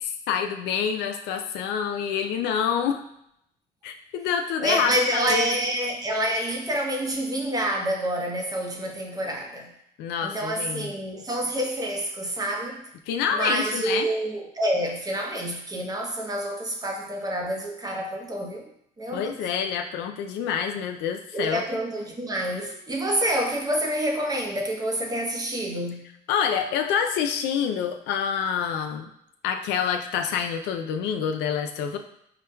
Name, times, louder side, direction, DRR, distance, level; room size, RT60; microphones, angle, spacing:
voice 1, 0.0-3.0 3.8-5.5 10.0-10.9 13.1-14.1 19.1-21.6 26.3-29.1 29.4-32.0, left 7 dB, 85° left, 0.4 m, -27 dB
voice 2, 4.6-9.7 10.2-12.8 13.3-18.6 19.0-19.3 21.3-26.1, right 1 dB, 20° right, 0.7 m, -28 dB
5.7 x 2.2 x 2.2 m
cardioid pair, 110°, 17 cm